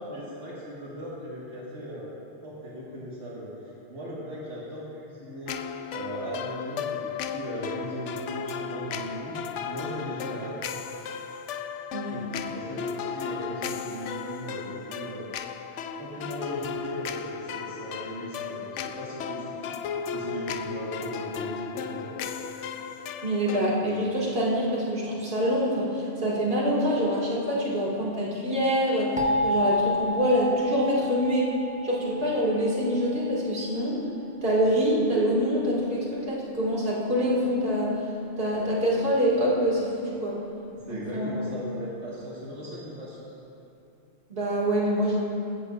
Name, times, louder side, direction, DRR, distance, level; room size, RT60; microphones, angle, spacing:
voice 1, 0.0-2.1 2.4-5.6 5.9-10.6 12.1-15.3 16.0-19.5 20.1-22.2 40.8-43.2, equal, 75° right, -7 dB, 2.0 m, -38 dB
sound 1, 5.5-23.8, left 6 dB, 80° left, 0.9 m, -35 dB
voice 2, 23.2-31.5 31.8-34.0 34.4-38.0 38.4-40.4 40.9-41.3 44.3-45.2, equal, 55° right, -5 dB, 2.3 m, -25 dB
sound 2, 29.2-33.9, left 1 dB, 5° right, 1.1 m, -30 dB
15.0 x 13.0 x 2.5 m, 2.7 s
omnidirectional pair, 1.2 m